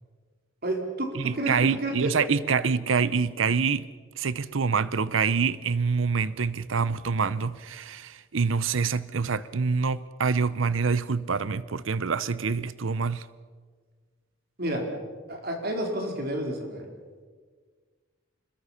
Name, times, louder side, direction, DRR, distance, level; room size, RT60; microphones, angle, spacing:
voice 1, 0.6-1.1 1.4-1.5 1.8-2.1 14.6-14.9 15.3-16.9, right 1 dB, 50° right, 4.1 m, -30 dB
voice 2, 1.1-3.9 4.2-13.3, right 5 dB, 75° right, 0.7 m, -26 dB
26.5 x 21.5 x 5.8 m
head